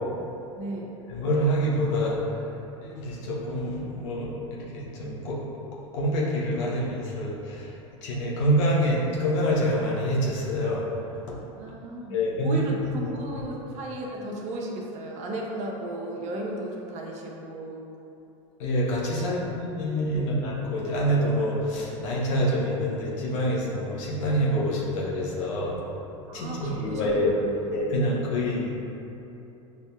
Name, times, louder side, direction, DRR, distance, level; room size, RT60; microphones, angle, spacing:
voice 1, 0.6-0.9 11.6-17.8 19.1-19.6 19.9-20.4 26.3-27.7, right 1 dB, 45° right, -1 dB, 0.7 m, -35 dB
voice 2, 1.1-2.2 2.8-5.4 5.9-7.7 8.0-10.8 11.3-11.4 12.1-12.6 13.0-13.1 18.6-25.8 26.3-27.3 27.7-28.8, equal, 65° left, -4 dB, 1.1 m, -26 dB
6.9 x 2.7 x 2.3 m, 2.9 s
hypercardioid pair, 100°, 17 cm